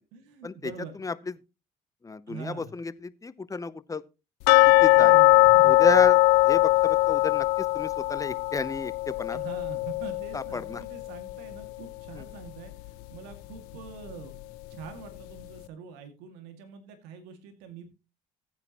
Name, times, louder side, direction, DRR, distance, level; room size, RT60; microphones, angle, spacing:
voice 1, 0.1-1.0 2.3-2.7 4.7-6.0 9.3-12.7 13.1-17.9, right 6 dB, 80° right, 2.4 m, -44 dB
voice 2, 2.0-4.0 4.6-5.1 5.6-9.4 10.3-10.8 12.1-12.2, left 3 dB, 20° left, 0.9 m, -31 dB
sound 1, 4.5-11.3 11.6-11.7 12.2-12.3 12.8-12.9, left 20 dB, 80° left, 0.5 m, -21 dB
14.5 x 9.5 x 3.1 m
supercardioid pair, 70°, 16 cm